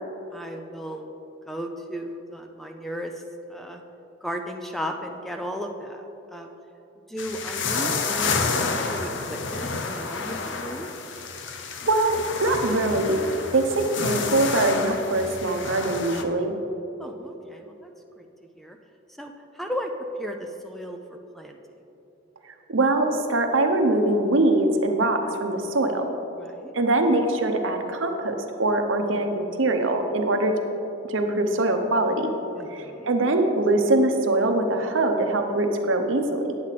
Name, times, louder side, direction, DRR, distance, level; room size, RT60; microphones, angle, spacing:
voice 1, 0.3-1.1 1.5-3.2 3.5-3.8 4.2-6.0 6.3-6.5 7.1-10.9 17.0-17.9 18.2-18.3 18.6-18.8 19.2-19.9 20.2-21.0 21.3-21.6 26.4-26.7 32.6-33.1, equal, ahead, 4 dB, 0.4 m, -35 dB
sound 1, 7.2-16.2, left 4 dB, 65° left, 0.7 m, -29 dB
voice 2, 11.9-13.2 13.5-16.5 22.7-26.0 26.7-30.6 31.1-32.3 32.7-36.5, right 2 dB, 70° right, 5 dB, 0.8 m, -23 dB
9.8 x 8.2 x 4.1 m, 3.0 s
head